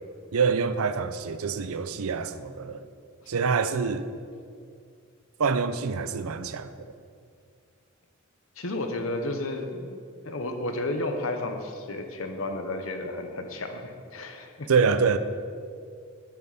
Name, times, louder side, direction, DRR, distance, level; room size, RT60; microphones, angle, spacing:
voice 1, 0.3-2.8 3.3-4.1 5.4-6.7 14.7-15.2, right 5 dB, 85° right, 0.5 m, -25 dB
voice 2, 8.6-14.7, left 2 dB, 70° left, 1.0 m, -32 dB
10.5 x 9.1 x 4.1 m
head